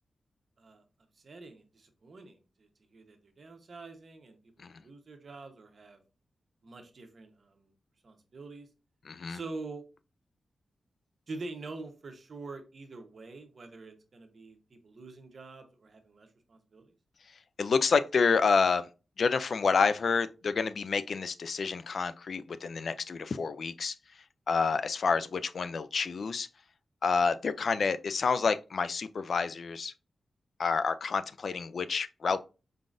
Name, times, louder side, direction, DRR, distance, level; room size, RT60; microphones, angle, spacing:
voice 1, 1.1-6.0 6.6-7.7 8.0-8.7 9.3-9.8 11.3-16.9, right 3 dB, 50° right, 1.0 m, -46 dB
voice 2, 9.1-9.4 17.6-18.9 19.2-23.9 24.5-26.5 27.0-29.9 30.6-32.4, left 5 dB, 60° left, 0.3 m, -28 dB
4.8 x 3.8 x 2.5 m
wide cardioid pair, 115°, 0 cm